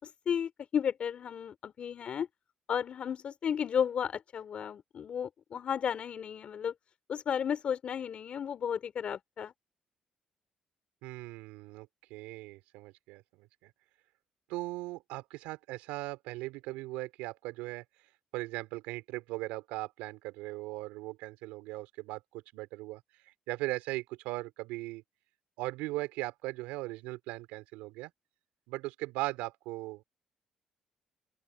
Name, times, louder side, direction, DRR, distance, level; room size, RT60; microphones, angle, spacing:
voice 1, 0.0-2.3 2.7-6.7 7.1-9.5, left 8 dB, 60° left, 4.5 m, -33 dB
voice 2, 11.0-13.7 14.5-17.8 18.3-23.0 23.5-25.0 25.6-28.1 28.7-30.0, right 20 dB, 90° right, 3.8 m, -39 dB
open air
supercardioid pair, 60°, 2 cm